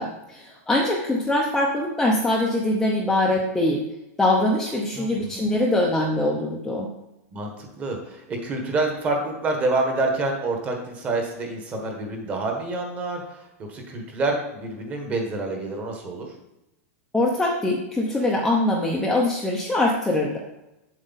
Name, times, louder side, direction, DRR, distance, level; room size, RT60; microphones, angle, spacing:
voice 1, 0.0-3.8 4.2-6.9 17.1-20.4, left 1 dB, 5° left, -2 dB, 0.6 m, -23 dB
voice 2, 4.9-5.5 7.3-13.4 13.7-16.3, right 2 dB, 20° right, 2 dB, 1.3 m, -27 dB
8.1 x 7.6 x 4.0 m, 0.93 s
supercardioid pair, 175°, 8 cm